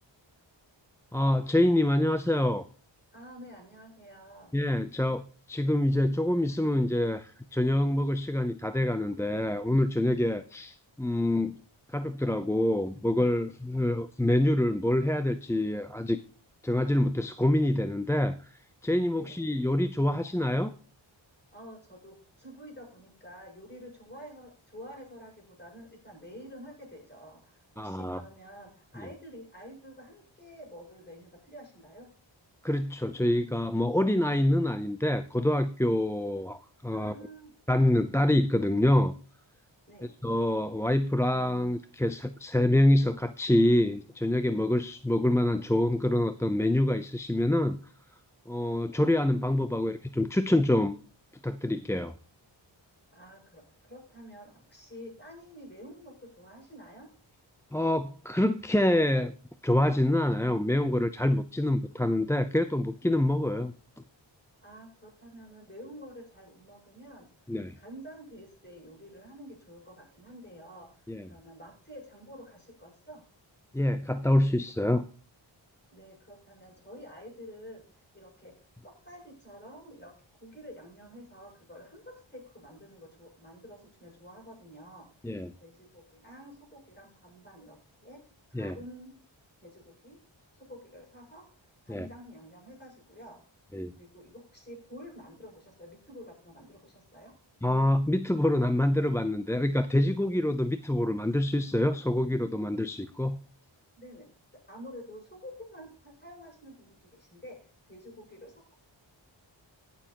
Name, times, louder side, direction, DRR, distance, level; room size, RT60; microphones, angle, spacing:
voice 1, 1.1-2.6 4.5-5.2 5.5-11.6 11.9-16.2 16.6-20.7 27.8-28.2 32.6-37.1 37.7-39.1 40.2-47.8 48.5-51.0 51.4-52.1 57.7-59.3 59.6-63.7 67.5-67.7 71.1-71.2 73.7-75.1 85.2-85.5 88.5-88.7 91.9-92.1 93.7-93.9 97.6-103.4, left 1 dB, 5° left, 10 dB, 0.5 m, -26 dB
voice 2, 3.1-4.5 19.1-19.4 21.5-32.1 36.9-37.5 39.9-40.1 53.1-57.1 61.5-61.8 64.6-67.3 67.8-73.2 75.9-85.1 85.6-89.2 89.6-90.2 90.5-93.4 93.9-97.3 104.0-108.8, equal, 20° left, -1 dB, 7.1 m, -49 dB
20.0 x 7.0 x 2.9 m, 0.40 s
wide cardioid pair, 90°, 47 cm